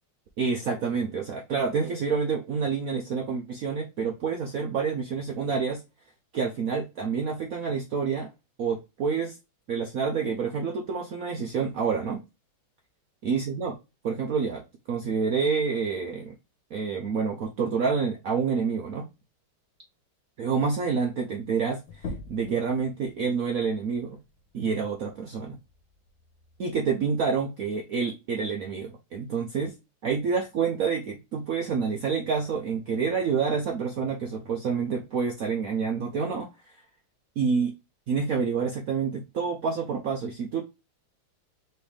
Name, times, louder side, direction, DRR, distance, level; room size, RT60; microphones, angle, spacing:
voice 1, 0.4-5.8 6.3-8.3 8.6-9.4 9.7-12.2 13.2-13.8 14.0-14.6 14.9-16.3 16.7-19.1 20.4-24.2 24.5-25.6 26.6-29.7 30.0-36.5 37.4-37.7 38.1-40.6, right 5 dB, 80° right, 0.7 m, -28 dB
sound 1, 21.9-27.1, left 3 dB, 70° left, 1.6 m, -45 dB
4.5 x 3.3 x 3.3 m
omnidirectional pair, 2.3 m